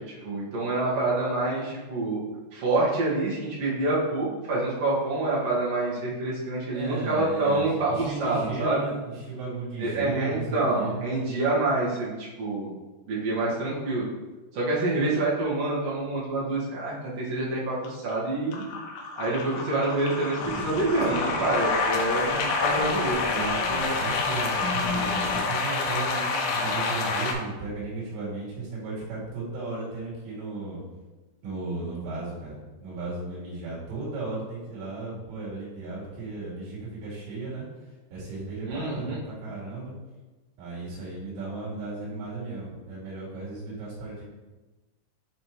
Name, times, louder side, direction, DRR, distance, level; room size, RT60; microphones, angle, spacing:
voice 1, 0.0-2.2 2.5-8.8 9.8-12.7 13.1-14.0 14.5-18.6 19.2-23.9 38.7-39.2, right 2 dB, 60° right, -6 dB, 1.6 m, -27 dB
voice 2, 6.7-11.0 23.3-30.8 31.4-37.7 38.1-39.9 40.6-44.2, right 3 dB, 90° right, -6 dB, 4.7 m, -35 dB
sound 1, 17.8-18.1 18.5-27.3, left 4 dB, 80° left, 3.0 m, -28 dB
sound 2, 20.4-25.4, left 3 dB, 50° left, 1.1 m, -39 dB
9.0 x 4.3 x 3.0 m, 1.2 s
omnidirectional pair, 5.0 m